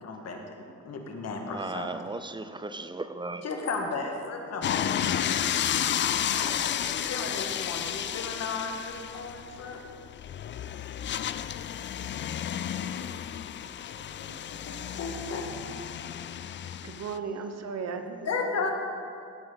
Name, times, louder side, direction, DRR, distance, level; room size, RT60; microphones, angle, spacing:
voice 1, 0.0-1.9 3.4-5.2 6.4-9.8 13.9-15.5 18.3-18.7, left 4 dB, 55° left, 1.7 m, -35 dB
voice 2, 1.5-3.4, right 2 dB, 15° right, 0.5 m, -36 dB
sound 1, 4.6-17.2, left 10 dB, 40° left, 0.4 m, -32 dB
voice 3, 16.5-18.7, right 5 dB, 60° right, 1.1 m, -37 dB
17.0 x 8.1 x 4.0 m
cardioid pair, 90°, 30 cm